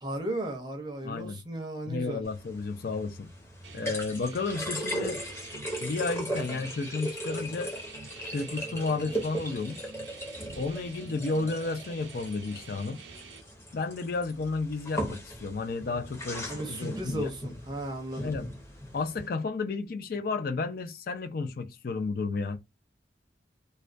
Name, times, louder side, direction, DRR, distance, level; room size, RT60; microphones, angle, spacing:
voice 1, 0.0-2.2 16.5-18.3, right 1 dB, 25° right, 0.5 m, -35 dB
voice 2, 1.0-1.4 1.9-3.3 3.7-5.2 5.8-7.7 8.3-9.9 10.5-13.0 13.7-17.3 18.2-18.5 18.9-22.6, left 3 dB, 55° left, 0.4 m, -32 dB
sound 1, 2.2-19.3, equal, 15° left, 0.8 m, -38 dB
sound 2, 3.6-13.4, right 4 dB, 80° right, 0.5 m, -48 dB
2.3 x 2.2 x 2.4 m
head